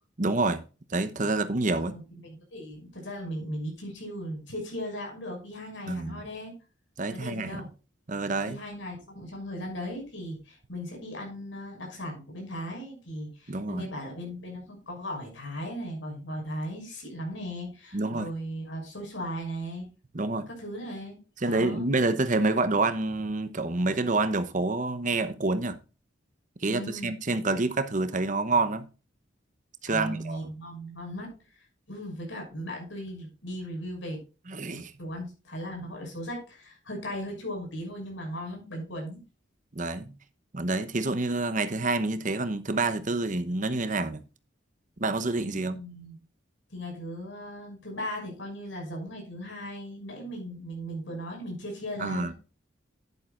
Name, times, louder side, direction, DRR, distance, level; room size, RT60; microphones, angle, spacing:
voice 1, 0.2-0.6 0.9-2.0 5.9-6.2 7.0-7.6 8.1-8.6 13.5-13.9 17.9-18.3 20.1-20.5 21.4-25.8 26.6-28.8 29.8-30.5 34.5-34.9 39.7-40.1 40.5-44.2 45.0-45.8 52.0-52.3, right 2 dB, 40° right, 1.0 m, -27 dB
voice 2, 1.8-6.5 7.1-7.7 8.4-19.9 20.5-21.2 21.4-21.9 26.7-27.1 29.9-34.2 34.7-39.2 45.5-46.2 46.7-52.3, equal, 75° left, 6.5 m, -37 dB
11.0 x 10.5 x 2.5 m
head